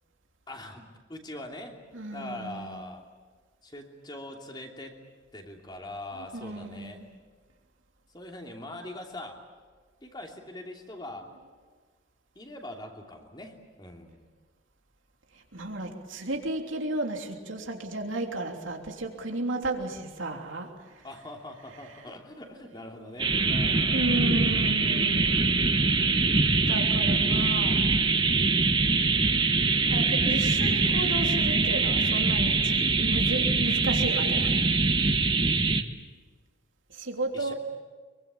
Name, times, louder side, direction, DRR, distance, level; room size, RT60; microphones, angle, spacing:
voice 1, 0.5-1.8 2.1-3.1 3.6-5.0 5.3-7.0 8.1-9.4 10.0-11.3 12.3-14.3 21.0-24.1 37.3-37.6, left 1 dB, 20° left, 2 dB, 2.9 m, -42 dB
voice 2, 1.9-2.8 6.1-7.1 15.3-20.7 20.9-21.0 23.9-25.5 26.4-27.8 29.9-34.5 36.9-37.6, right 2 dB, 85° right, 2 dB, 3.3 m, -33 dB
sound 1, 23.2-35.8, right 3 dB, 25° right, 1.2 m, -23 dB
24.5 x 23.0 x 8.7 m, 1.5 s
head